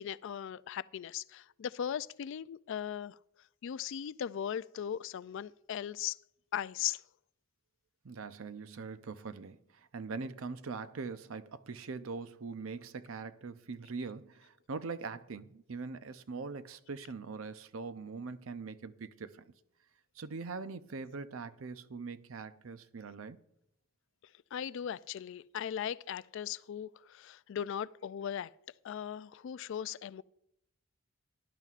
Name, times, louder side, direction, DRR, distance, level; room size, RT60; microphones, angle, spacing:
voice 1, 0.0-3.2 3.6-6.2 6.5-7.0 24.5-28.5 28.8-30.2, left 9 dB, 65° left, 0.3 m, -38 dB
voice 2, 8.0-19.4 20.2-23.4, right 4 dB, 85° right, 0.6 m, -42 dB
17.5 x 11.0 x 2.5 m
head